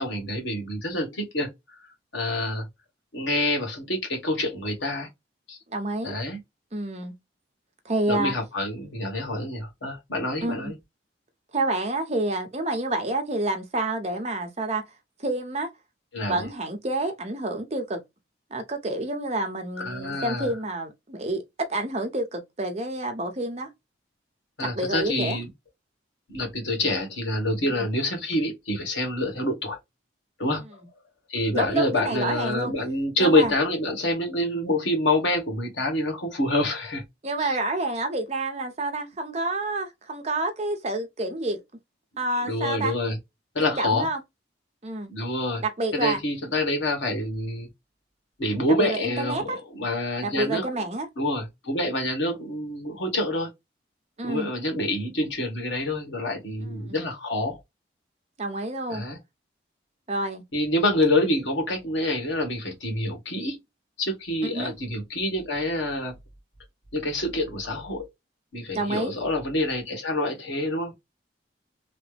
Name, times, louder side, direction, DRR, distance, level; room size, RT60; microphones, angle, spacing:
voice 1, 0.0-1.5 2.1-2.6 3.1-5.1 5.5-5.6 6.0-6.4 8.1-10.7 16.1-16.5 19.8-20.5 24.6-25.5 26.3-29.8 30.4-30.8 31.3-37.0 37.4-37.6 42.4-43.1 43.5-44.1 45.1-45.6 45.9-47.7 48.4-50.7 51.2-53.5 54.2-57.6 58.9-59.2 60.5-63.6 64.0-66.1 66.9-68.1 68.5-70.9, left 1 dB, 85° left, 1.4 m, -27 dB
voice 2, 5.7-6.1 6.7-7.1 7.8-8.3 10.4-10.7 11.5-14.8 15.2-15.7 16.3-18.0 18.5-21.4 21.7-23.7 24.6-25.4 27.8-27.9 31.5-32.7 33.2-33.5 37.2-41.6 42.2-42.9 43.6-44.2 44.8-45.1 45.6-46.2 48.8-49.6 50.2-51.1 54.2-54.5 56.6-57.0 58.4-59.0 60.1-60.4 64.4-64.7 68.7-69.1, right 2 dB, 35° right, 0.8 m, -28 dB
3.2 x 2.0 x 3.1 m
head